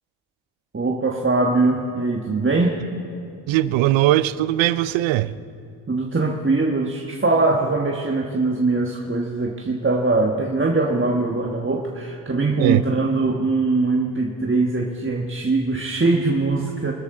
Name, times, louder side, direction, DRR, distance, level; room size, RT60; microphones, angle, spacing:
voice 1, 0.7-2.8 5.9-16.9, right 3 dB, 25° right, 1.4 m, -22 dB
voice 2, 3.5-5.3 12.6-12.8, right 15 dB, 90° right, 0.5 m, -19 dB
24.0 x 13.0 x 3.8 m
supercardioid pair, 50°, 44 cm